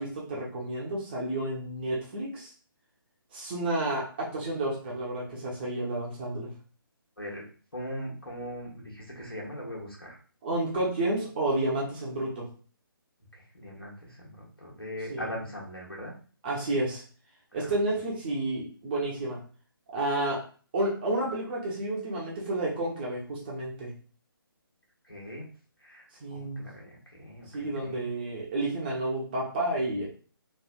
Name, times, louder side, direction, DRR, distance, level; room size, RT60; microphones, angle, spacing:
voice 1, 0.0-2.5 3.3-6.5 10.4-12.5 15.1-15.3 16.4-17.0 17.5-19.4 19.9-20.4 20.7-23.9 26.2-26.7 27.5-30.1, right 1 dB, 25° right, -4 dB, 0.8 m, -30 dB
voice 2, 7.7-10.2 13.3-16.1 17.5-17.8 25.1-25.5 25.8-28.1, equal, 85° left, -3 dB, 1.3 m, -40 dB
3.2 x 2.6 x 2.4 m, 0.41 s
figure-of-eight pair, 145°, 12 cm